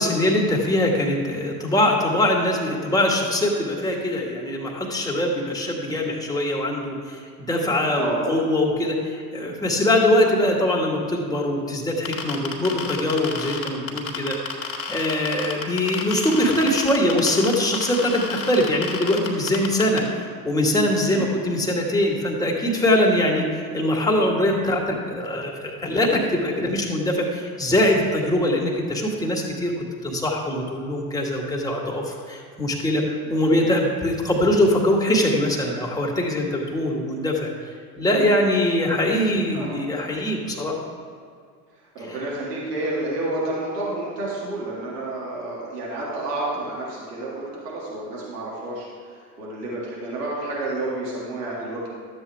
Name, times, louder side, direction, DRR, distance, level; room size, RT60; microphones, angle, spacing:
voice 1, 0.0-14.4 14.9-20.0 20.4-33.0 33.3-37.5 38.0-40.8 42.1-42.2, left 1 dB, 10° left, -2 dB, 2.0 m, -22 dB
voice 2, 7.9-8.3 21.1-21.3 33.2-33.6 39.5-39.7 41.9-48.9 49.4-51.9, right 2 dB, 80° right, -6 dB, 2.2 m, -30 dB
sound 1, 12.1-20.0, left 6 dB, 30° left, 1.8 m, -30 dB
12.0 x 7.7 x 3.5 m, 2.1 s
hypercardioid pair, 70°, 47 cm